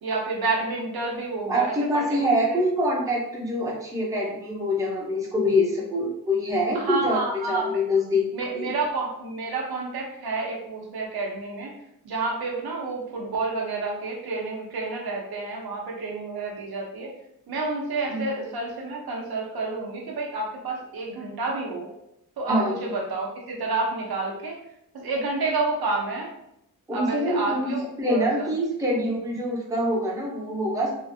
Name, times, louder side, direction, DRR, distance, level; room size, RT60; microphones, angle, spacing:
voice 1, 0.0-2.6 6.7-7.8 8.3-11.7 12.0-17.1 17.5-21.9 22.4-24.6 24.9-26.3 26.9-28.5, right 3 dB, 85° right, -1 dB, 0.8 m, -29 dB
voice 2, 1.5-8.7 18.1-18.2 22.5-22.9 26.9-30.9, left 1 dB, 10° right, -4 dB, 0.6 m, -25 dB
2.9 x 2.5 x 2.6 m, 0.79 s
wide cardioid pair, 180°, 36 cm